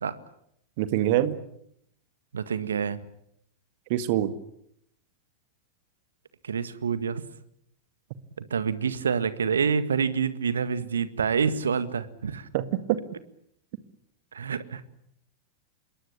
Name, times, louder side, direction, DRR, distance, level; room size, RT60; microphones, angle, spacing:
voice 1, 0.8-1.4 3.9-4.3 12.5-13.0, right 13 dB, 50° right, 12 dB, 2.0 m, -25 dB
voice 2, 2.3-3.0 6.4-7.2 8.4-12.5 14.3-14.8, right 6 dB, 70° right, 13 dB, 1.8 m, -27 dB
27.0 x 22.5 x 8.7 m, 0.73 s
figure-of-eight pair, 90°, 0 cm